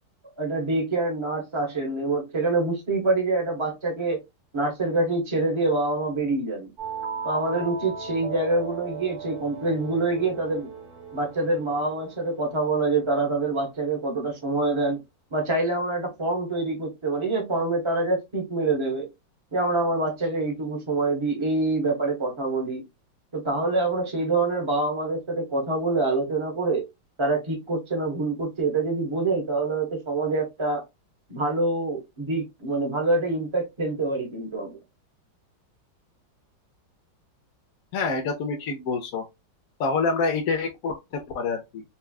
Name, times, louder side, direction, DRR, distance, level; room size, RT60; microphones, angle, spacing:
voice 1, 0.4-4.2 4.5-6.7 7.2-10.7 11.1-15.0 15.3-19.1 19.5-22.8 23.3-26.8 27.2-30.8 31.3-34.8, right 2 dB, 20° right, 1.0 m, -26 dB
sound 1, 6.8-13.3, right 5 dB, 40° right, 1.5 m, -38 dB
voice 2, 37.9-39.3 39.8-41.8, left 4 dB, 65° left, 0.9 m, -27 dB
5.5 x 2.3 x 2.3 m
omnidirectional pair, 2.0 m